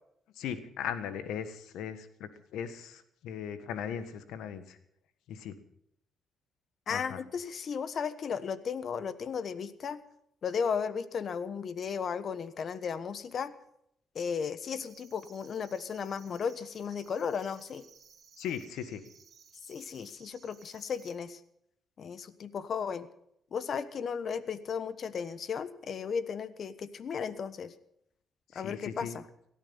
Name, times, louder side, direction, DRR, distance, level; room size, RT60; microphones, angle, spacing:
voice 1, 0.4-4.8 5.3-5.5 6.9-7.2 18.4-19.0 28.5-29.2, left 8 dB, 85° left, 11 dB, 1.5 m, -38 dB
voice 2, 6.9-10.0 10.4-13.5 14.1-17.9 19.7-21.4 22.0-23.1 23.5-27.7 28.5-29.2, left 6 dB, 55° left, 14 dB, 1.2 m, -35 dB
sound 1, 14.8-21.2, right 6 dB, 55° right, 2.7 m, -59 dB
18.0 x 13.5 x 5.6 m, 0.74 s
cardioid pair, 90°, 0 cm